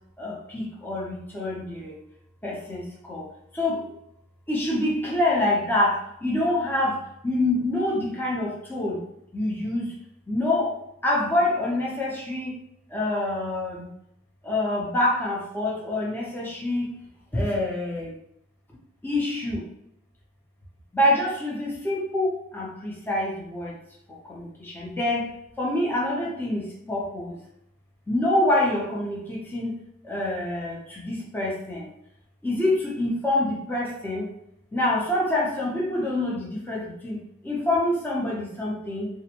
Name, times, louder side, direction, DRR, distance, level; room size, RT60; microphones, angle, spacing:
voice 1, 0.2-2.0 2.4-3.3 3.5-3.9 4.5-9.1 9.3-9.9 10.3-10.7 11.0-12.6 12.9-13.9 14.4-17.0 17.3-18.2 19.0-19.7 20.9-23.8 24.1-25.3 25.6-27.4 28.1-29.7 30.0-31.9 32.4-34.3 34.7-39.1, left 1 dB, 10° left, -5 dB, 0.5 m, -26 dB
2.4 x 2.1 x 2.8 m, 0.79 s
head